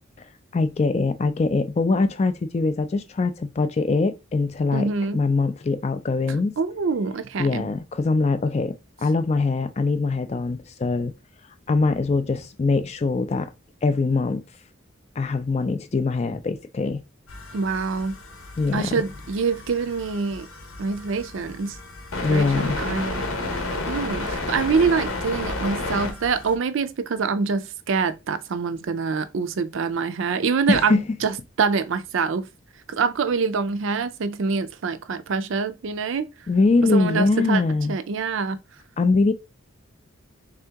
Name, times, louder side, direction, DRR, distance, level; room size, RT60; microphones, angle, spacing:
voice 1, 0.5-4.9 5.1-6.6 7.4-11.1 11.7-13.5 13.8-14.4 15.2-17.0 18.6-18.9 22.2-22.8 30.7-31.0 36.5-38.0 39.0-39.3, left 3 dB, 30° left, 0.3 m, -22 dB
voice 2, 4.7-5.2 6.6-7.7 17.5-18.2 18.7-20.5 20.8-21.8 22.3-23.3 23.9-32.5 32.9-36.3 36.8-37.6 37.9-38.6, right 5 dB, 65° right, 0.4 m, -25 dB
sound 1, 17.3-26.5, left 2 dB, 80° left, 1.0 m, -32 dB
3.6 x 2.8 x 3.4 m
head